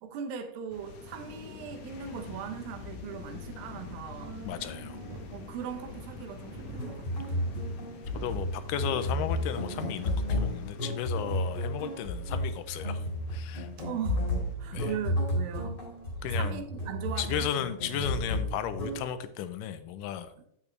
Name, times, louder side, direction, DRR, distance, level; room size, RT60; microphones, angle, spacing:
voice 1, 0.0-4.6 5.3-7.4 13.8-15.8 16.3-17.5, right 8 dB, 90° right, 2.6 m, -39 dB
sound 1, 0.7-14.5, left 5 dB, 65° left, 1.6 m, -47 dB
sound 2, 4.2-19.4, right 4 dB, 70° right, 2.0 m, -48 dB
voice 2, 4.4-5.0 8.1-13.0 13.3-13.7 14.7-14.9 16.2-16.6 17.2-20.3, left 9 dB, 80° left, 2.1 m, -34 dB
sound 3, 6.7-19.0, left 1 dB, 35° left, 2.4 m, -32 dB
8.8 x 8.2 x 3.2 m
omnidirectional pair, 4.0 m